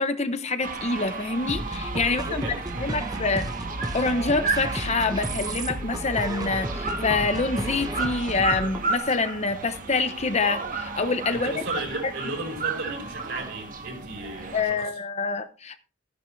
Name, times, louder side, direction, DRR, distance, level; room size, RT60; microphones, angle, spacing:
voice 1, 0.0-2.4 2.7-3.5 3.9-11.6 14.5-15.8, left 3 dB, 35° left, 0.9 m, -26 dB
sound 1, 0.6-14.6, right 4 dB, 45° right, 1.6 m, -33 dB
sound 2, 1.5-8.9, right 1 dB, 20° right, 1.2 m, -33 dB
voice 2, 2.0-2.6 11.3-14.9, right 2 dB, 65° right, 4.9 m, -35 dB
13.5 x 10.5 x 3.3 m
head